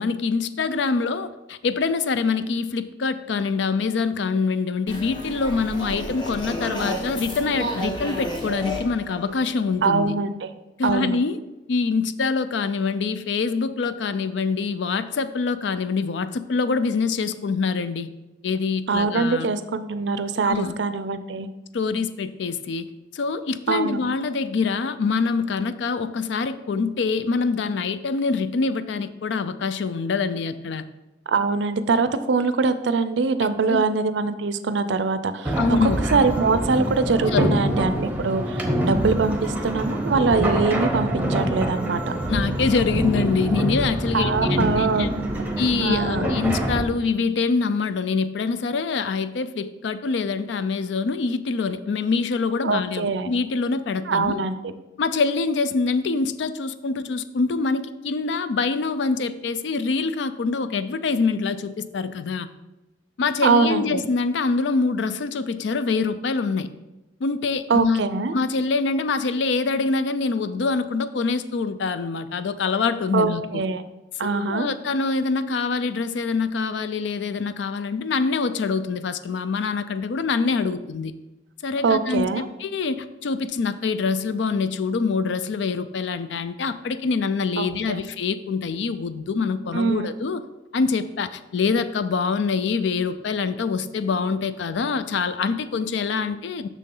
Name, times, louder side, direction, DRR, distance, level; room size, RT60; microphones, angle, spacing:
voice 1, 0.0-10.2 10.8-11.4 11.7-18.1 18.4-19.5 20.4-20.8 21.7-22.9 23.1-30.8 33.4-33.8 35.6-36.0 37.3-37.9 42.3-45.1 45.6-54.4 55.0-62.5 63.2-66.7 67.2-68.1 68.3-73.6 74.2-81.1 81.6-82.3 82.6-90.4 90.7-96.7, left 4 dB, 65° left, 13 dB, 0.4 m, -25 dB
sound 1, 4.9-10.0, equal, 25° left, 1.0 m, -31 dB
voice 2, 9.8-10.5 10.8-11.2 18.9-21.5 23.7-24.0 31.3-42.0 44.1-45.1 45.8-46.3 52.6-53.3 54.1-54.7 63.4-63.8 67.7-68.3 73.1-73.8 74.2-74.7 81.8-82.5 87.6-88.0 89.7-90.1, right 4 dB, 65° right, 12 dB, 0.4 m, -23 dB
sound 2, 35.4-46.8, right 1 dB, 10° right, 0.8 m, -25 dB
6.7 x 6.2 x 3.8 m, 1.0 s
head